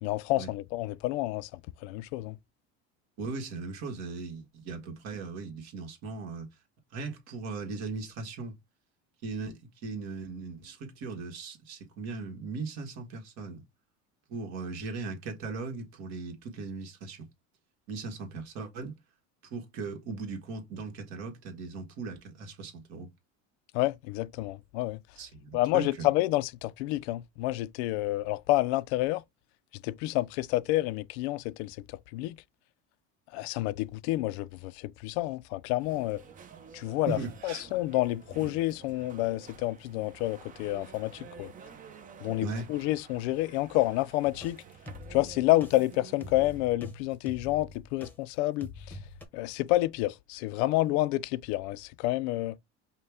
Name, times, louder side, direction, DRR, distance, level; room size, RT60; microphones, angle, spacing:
voice 1, 0.0-2.4 23.7-25.0 25.5-29.2 29.8-31.8 32.1-32.4 33.3-36.2 36.7-37.2 37.4-41.5 42.2-44.6 45.1-49.0 49.3-52.6, left 17 dB, 80° left, 0.5 m, -29 dB
voice 2, 3.2-6.5 6.9-8.5 9.2-13.6 14.3-17.3 17.9-19.0 19.5-23.1 25.2-26.1 33.3-33.4 37.1-37.6 42.4-42.7, right 4 dB, 55° right, 1.6 m, -38 dB
sound 1, 35.8-46.7, right 6 dB, 25° right, 0.6 m, -50 dB
sound 2, 44.2-48.2 48.6-49.3, left 2 dB, 5° left, 1.0 m, -45 dB
5.5 x 2.3 x 3.4 m
cardioid pair, 145°, 32 cm